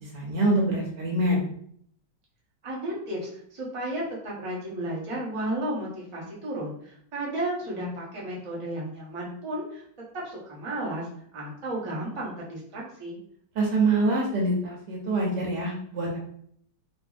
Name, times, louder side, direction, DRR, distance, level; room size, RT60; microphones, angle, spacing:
voice 1, 0.0-1.4 13.6-16.2, right 2 dB, 75° right, -2 dB, 1.2 m, -25 dB
voice 2, 2.6-9.8 10.2-11.1 11.3-13.2, right 1 dB, 50° right, -5 dB, 0.3 m, -33 dB
2.8 x 2.5 x 2.3 m, 0.64 s
omnidirectional pair, 2.0 m